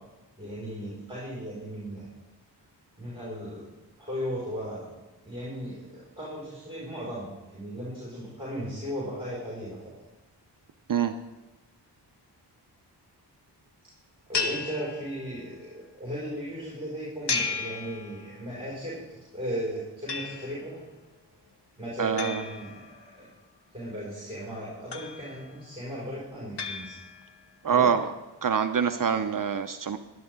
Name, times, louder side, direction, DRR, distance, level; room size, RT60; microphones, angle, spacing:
voice 1, 0.4-2.1 3.0-3.7 4.0-4.9 5.2-9.8 14.3-19.0 19.3-20.8 21.8-23.3 23.7-26.9 27.7-27.9, equal, 15° right, -7 dB, 5.1 m, -36 dB
sound 1, 14.3-15.6 17.3-18.6 20.1-20.8 22.2-23.3 24.9-25.6 26.6-27.5, left 4 dB, 70° left, 1.4 m, -34 dB
voice 2, 22.0-22.4 27.6-28.0 28.4-30.0, right 7 dB, 50° right, 8 dB, 0.7 m, -25 dB
17.0 x 11.0 x 3.7 m, 1.1 s
wide cardioid pair, 105°, 42 cm